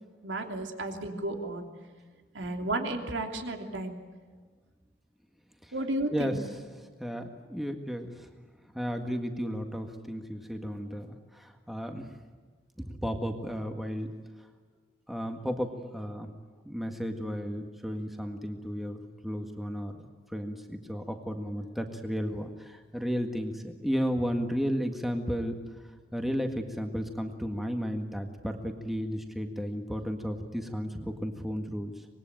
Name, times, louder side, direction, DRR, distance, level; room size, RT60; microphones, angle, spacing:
voice 1, 0.2-1.7 2.3-4.0 5.7-6.4, right 2 dB, 80° right, 4 dB, 3.0 m, -33 dB
voice 2, 7.0-8.3 8.7-12.1 12.8-14.1 15.1-16.3 16.6-19.9 20.3-25.6 26.1-32.1, equal, ahead, 4 dB, 1.8 m, -33 dB
25.5 x 21.0 x 9.0 m, 1.5 s
head